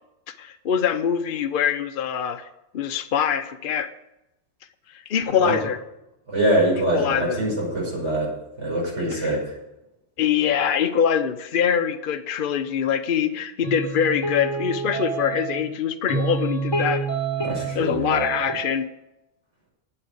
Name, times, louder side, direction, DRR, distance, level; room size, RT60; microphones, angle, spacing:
voice 1, 0.3-2.5 2.7-3.9 4.9-5.8 6.9-7.4 9.1-9.3 10.2-17.1 17.8-18.9, left 8 dB, 50° left, 8 dB, 0.7 m, -24 dB
voice 2, 6.3-8.3 8.6-9.5 17.4-18.3, right 1 dB, 65° right, -3 dB, 6.4 m, -24 dB
sound 1, 13.6-15.7 16.1-17.8 18.1-18.8, right 4 dB, 20° left, 3.9 m, -28 dB
9.1 x 8.8 x 8.1 m, 0.90 s
omnidirectional pair, 1.3 m